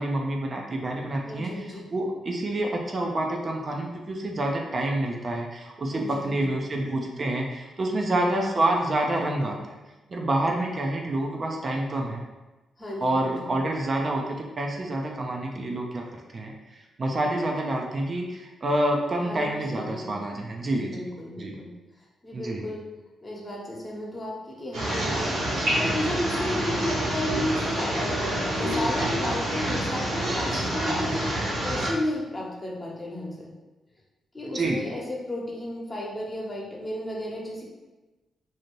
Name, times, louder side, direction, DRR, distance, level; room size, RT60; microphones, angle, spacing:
voice 1, 0.0-1.6 1.9-9.7 10.1-12.2 13.0-16.0 16.3-21.0 21.4-21.6 22.3-22.7 34.5-34.9, right 1 dB, 45° right, 1 dB, 0.5 m, -28 dB
voice 2, 1.2-1.9 5.9-6.4 7.9-8.3 12.8-13.5 19.2-20.2 20.7-21.7 22.2-22.8 23.2-33.5 34.3-37.6, left 1 dB, 30° left, -3 dB, 1.0 m, -34 dB
sound 1, 24.7-31.9, right 1 dB, 75° right, 1.1 m, -27 dB
2.7 x 2.4 x 3.0 m, 1.1 s
hypercardioid pair, 40°, 0 cm